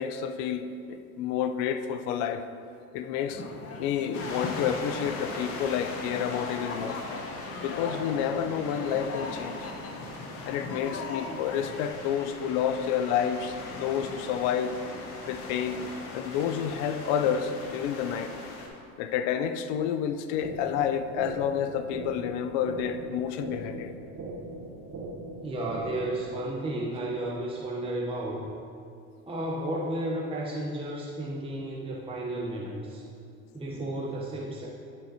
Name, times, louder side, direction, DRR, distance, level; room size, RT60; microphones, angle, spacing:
voice 1, 0.0-2.5 2.9-3.4 3.8-7.0 7.6-9.6 10.4-14.7 15.3-15.8 16.1-18.3 19.0-23.9, left 8 dB, 65° left, 10 dB, 0.6 m, -29 dB
sound 1, 3.3-11.8, left 3 dB, 35° left, 0.9 m, -39 dB
sound 2, 4.1-18.7, left 2 dB, 85° left, 1.1 m, -40 dB
sound 3, 20.4-26.4, right 2 dB, 45° right, 1.1 m, -40 dB
voice 2, 25.4-28.4 29.3-33.0 33.5-34.7, right 1 dB, 15° right, -4 dB, 0.9 m, -33 dB
11.5 x 4.6 x 2.8 m, 2.4 s
hypercardioid pair, 75°, 43 cm